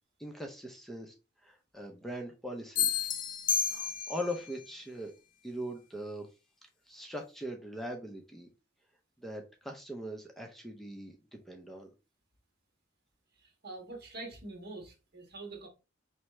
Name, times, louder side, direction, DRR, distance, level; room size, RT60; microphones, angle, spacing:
voice 1, 0.2-1.1 1.4-3.1 3.7-5.1 5.4-6.3 6.9-8.5 9.2-11.1 11.5-11.9, equal, ahead, 0.6 m, -41 dB
sound 1, 2.8-4.4, left 8 dB, 45° left, 0.6 m, -31 dB
voice 2, 13.4-15.7, right 2 dB, 60° right, 1.4 m, -45 dB
4.6 x 3.2 x 3.1 m
head